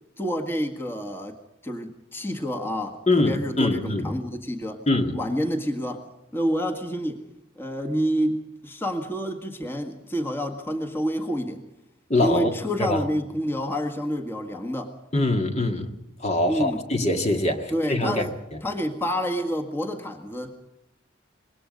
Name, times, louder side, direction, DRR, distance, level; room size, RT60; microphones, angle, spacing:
voice 1, 0.2-1.4 1.6-4.8 5.1-6.0 6.3-7.2 7.5-11.6 12.2-15.0 16.5-16.9 17.7-18.3 18.6-20.5, equal, 10° left, 1.7 m, -28 dB
voice 2, 3.1-4.1 4.9-5.2 12.1-12.5 12.8-13.0 15.1-15.9 16.2-18.2, left 2 dB, 35° left, 1.9 m, -23 dB
25.5 x 21.5 x 5.3 m
head